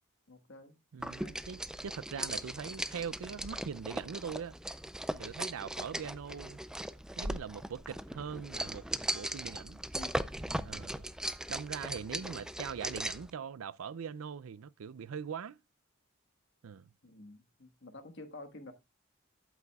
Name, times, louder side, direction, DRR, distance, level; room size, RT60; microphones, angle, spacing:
voice 1, 0.3-0.8 1.1-1.4 9.9-10.8 12.1-12.4 17.0-18.7, left 2 dB, 60° left, 1.5 m, -51 dB
voice 2, 0.9-4.6 5.2-6.6 7.2-8.8 9.1-9.8 10.6-11.1 11.5-15.6 16.6-16.9, right 7 dB, 80° right, 0.4 m, -42 dB
sound 1, 1.0-13.3, right 1 dB, 5° right, 0.4 m, -39 dB
12.0 x 8.3 x 2.3 m
head